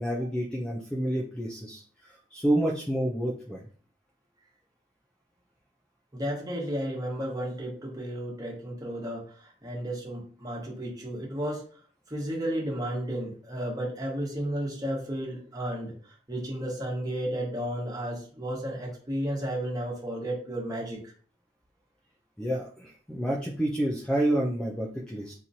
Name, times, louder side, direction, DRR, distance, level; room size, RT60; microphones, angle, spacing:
voice 1, 0.0-3.6 22.4-25.3, right 1 dB, 5° left, -3 dB, 0.4 m, -29 dB
voice 2, 6.1-11.6 12.1-21.1, right 1 dB, 20° right, -3 dB, 1.3 m, -33 dB
3.9 x 3.0 x 2.7 m, 0.43 s
head